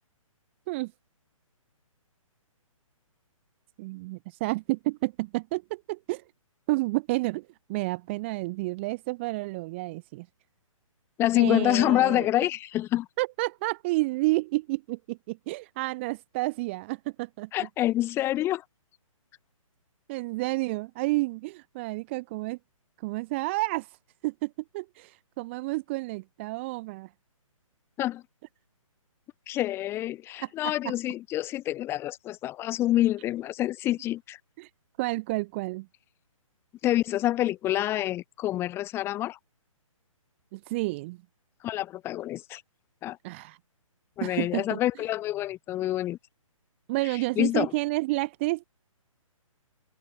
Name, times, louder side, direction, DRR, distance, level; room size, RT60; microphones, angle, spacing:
voice 1, 3.8-6.2 6.7-10.3 11.3-12.3 13.2-17.7 20.1-22.6 23.0-23.9 24.2-27.1 30.4-30.9 34.6-34.7 35.0-35.9 40.5-41.2 43.2-43.6 44.2-44.8 46.9-48.6, right 22 dB, 20° right, 0.6 m, -30 dB
voice 2, 11.2-13.1 17.5-18.6 28.0-28.2 29.5-34.4 36.8-39.4 41.6-42.6 43.0-43.2 44.2-46.2 47.4-47.7, left 14 dB, 15° left, 1.0 m, -27 dB
hypercardioid pair, 155°, 18 cm